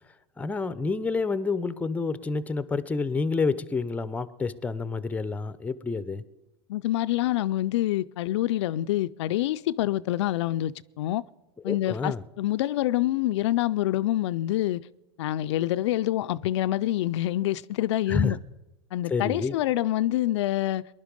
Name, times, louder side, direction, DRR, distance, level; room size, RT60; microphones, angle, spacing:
voice 1, 0.4-6.2 11.7-12.2 18.1-18.4 19.1-19.5, left 4 dB, 10° left, 0.6 m, -28 dB
voice 2, 6.7-11.2 11.6-14.8 15.2-18.4 18.9-20.9, left 14 dB, 80° left, 0.4 m, -26 dB
19.5 x 11.0 x 5.3 m
supercardioid pair, 120°, 15 cm